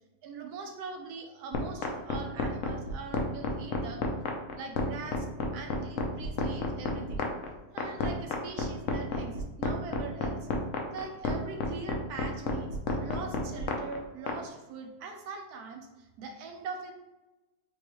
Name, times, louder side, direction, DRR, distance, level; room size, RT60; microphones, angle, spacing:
voice 1, 0.2-4.1 4.6-7.3 7.7-10.5 10.9-16.9, right 5 dB, 75° right, 3 dB, 1.2 m, -42 dB
sound 1, 1.5-14.4, left 4 dB, 60° left, 0.9 m, -30 dB
4.5 x 3.1 x 3.0 m, 1.1 s
omnidirectional pair, 1.7 m